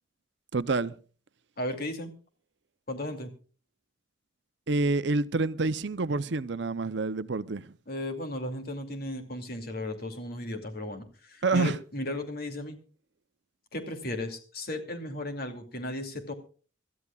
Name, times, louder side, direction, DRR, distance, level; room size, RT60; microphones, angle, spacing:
voice 1, 0.5-0.9 4.7-7.7 11.4-11.8, right 3 dB, 60° right, 0.6 m, -27 dB
voice 2, 1.6-2.1 2.9-3.3 7.9-12.8 13.7-16.3, left 1 dB, 50° left, 2.6 m, -35 dB
26.0 x 13.5 x 2.4 m
head